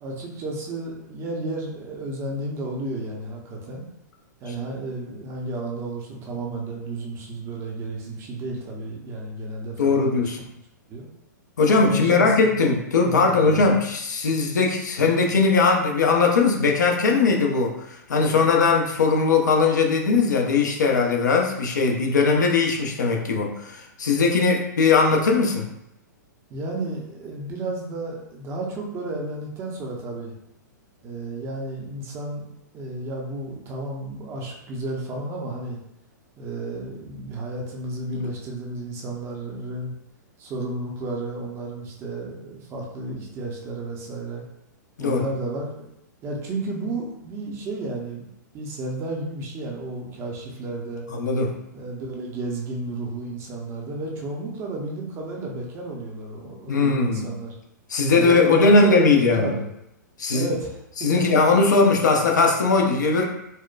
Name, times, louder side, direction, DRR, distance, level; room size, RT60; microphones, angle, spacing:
voice 1, 0.0-3.9 4.4-10.5 10.9-11.1 11.9-12.3 12.9-13.7 26.5-30.3 31.0-32.4 32.7-35.8 36.4-39.9 40.4-44.4 45.0-45.9 46.2-48.3 48.5-51.1 51.7-57.5 58.1-59.7 60.3-61.4, right 2 dB, 25° right, -1 dB, 0.7 m, -32 dB
voice 2, 9.8-10.4 11.6-25.7 45.0-45.3 51.1-51.5 56.7-57.3 57.9-59.5 60.2-60.5 61.0-63.2, left 4 dB, 65° left, 1 dB, 0.7 m, -19 dB
4.2 x 2.2 x 2.3 m, 0.81 s
figure-of-eight pair, 110°, 10 cm